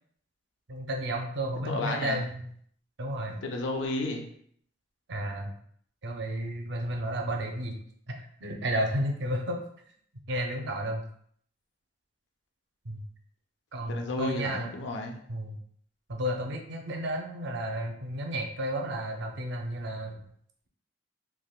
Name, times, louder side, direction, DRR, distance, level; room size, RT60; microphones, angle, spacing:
voice 1, 0.7-2.5 3.0-3.4 5.1-5.5 6.0-7.7 8.1-9.6 10.3-11.1 12.8-13.0 13.7-14.8 15.3-15.5 16.1-20.2, right 1 dB, 65° right, 2 dB, 0.6 m, -32 dB
voice 2, 1.7-2.2 3.3-4.3 13.9-15.2, left 2 dB, 80° left, 2 dB, 0.5 m, -32 dB
3.4 x 2.2 x 2.3 m, 0.63 s
head